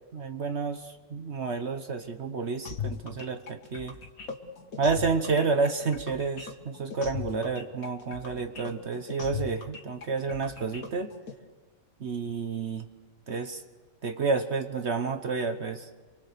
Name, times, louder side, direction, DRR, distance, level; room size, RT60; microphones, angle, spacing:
voice 1, 0.1-3.9 4.8-11.1 12.0-12.9 13.3-13.6 14.0-15.9, right 4 dB, 55° right, 7 dB, 1.2 m, -30 dB
sound 1, 2.6-11.3, left 6 dB, 75° left, 2.0 m, -39 dB
25.5 x 24.0 x 6.7 m, 1.4 s
omnidirectional pair, 1.5 m